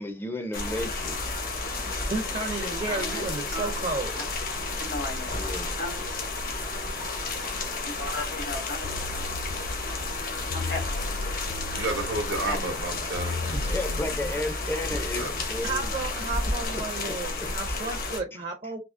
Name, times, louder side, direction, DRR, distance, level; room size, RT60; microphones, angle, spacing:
voice 1, 0.0-1.4 5.4-5.7 13.5-15.9 16.7-17.8, left 1 dB, 15° left, 0.4 m, -34 dB
sound 1, 0.5-18.2, left 3 dB, 50° left, 0.8 m, -32 dB
voice 2, 1.6-4.1 15.6-18.8, right 3 dB, 40° right, 0.5 m, -33 dB
voice 3, 2.4-3.2 3.5-3.7 4.2-4.3 4.8-5.4 5.8-6.0 7.7-8.9 10.3-10.8 12.4-12.6 13.0-13.1, left 1 dB, 70° left, 1.6 m, -35 dB
sound 2, 8.8-14.2, left 3 dB, 90° left, 0.3 m, -36 dB
voice 4, 11.7-14.4 14.8-15.4, right 2 dB, 85° right, 0.8 m, -33 dB
3.5 x 2.7 x 2.5 m
head